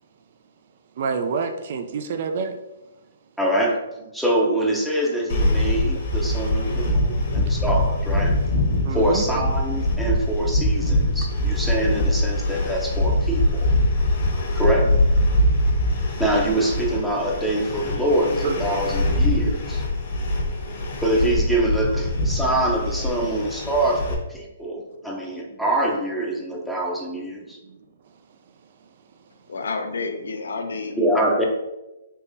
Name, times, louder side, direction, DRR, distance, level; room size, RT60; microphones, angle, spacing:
voice 1, 1.0-2.6 7.0-7.2 8.8-9.2 10.4-10.5 18.4-18.6, right 5 dB, 55° right, 7 dB, 0.3 m, -27 dB
voice 2, 3.4-3.8 4.1-8.3 8.9-13.7 14.5-14.9 16.2-19.8 21.0-27.6 31.0-31.4, right 1 dB, ahead, -2 dB, 0.6 m, -24 dB
sound 1, 5.3-24.1, left 1 dB, 50° left, 1.0 m, -23 dB
voice 3, 29.5-31.4, left 4 dB, 80° left, 5 dB, 0.5 m, -30 dB
3.6 x 2.8 x 2.7 m, 1.0 s
hypercardioid pair, 145°, 0 cm